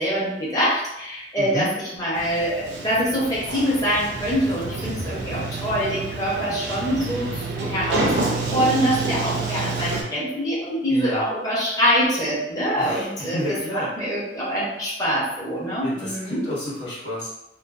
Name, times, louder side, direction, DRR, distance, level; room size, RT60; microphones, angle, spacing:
voice 1, 0.0-13.4 13.7-16.4, equal, 20° left, -7 dB, 0.7 m, -24 dB
voice 2, 1.4-1.7 10.9-11.2 12.8-13.9 15.8-17.3, equal, 90° left, -8 dB, 1.2 m, -30 dB
Sliding door, 2.1-10.0, right 3 dB, 70° right, 0.5 m, -29 dB
2.4 x 2.3 x 2.3 m, 0.91 s
head